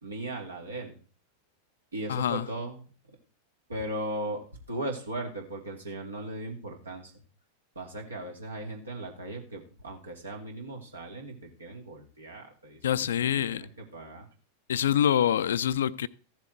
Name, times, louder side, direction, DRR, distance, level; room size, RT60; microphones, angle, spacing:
voice 1, 0.0-1.0 1.9-2.8 3.7-7.1 7.8-14.3, right 1 dB, 75° right, 2.6 m, -38 dB
voice 2, 2.1-2.5 12.8-13.7 14.7-16.1, left 10 dB, 60° left, 0.5 m, -26 dB
14.5 x 7.5 x 4.4 m
figure-of-eight pair, 90°, 0 cm